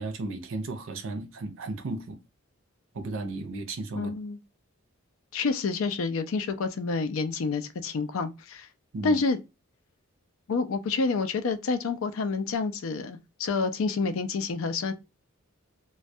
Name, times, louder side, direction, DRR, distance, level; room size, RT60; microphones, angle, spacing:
voice 1, 0.0-2.2 2.9-4.1 8.9-9.2, right 2 dB, 60° right, 0.5 m, -34 dB
voice 2, 4.0-4.4 5.3-8.7 9.0-9.4 10.5-14.9, left 4 dB, 65° left, 0.4 m, -28 dB
2.2 x 2.1 x 2.6 m
head